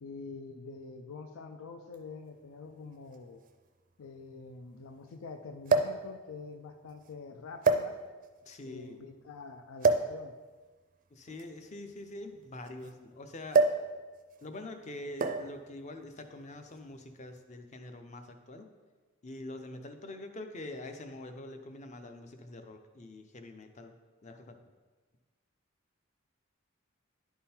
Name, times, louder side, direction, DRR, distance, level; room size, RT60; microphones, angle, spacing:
voice 1, 0.0-3.4 4.0-8.0 8.6-10.4, left 4 dB, 80° left, 6 dB, 0.5 m, -46 dB
sound 1, 1.9-2.0 3.1-3.2 3.5-3.6 5.7-6.1 6.9-7.1 7.6-8.3 9.8-10.2 11.3-12.9 13.5-13.9 14.2-14.4 15.2-15.6 16.5-16.8, right 3 dB, 40° right, 0.4 m, -27 dB
voice 2, 8.5-9.0 11.1-13.7 14.4-18.7 19.2-23.9 24.2-24.6, left 1 dB, 35° left, 6 dB, 0.5 m, -45 dB
10.5 x 3.7 x 4.3 m, 1.3 s
head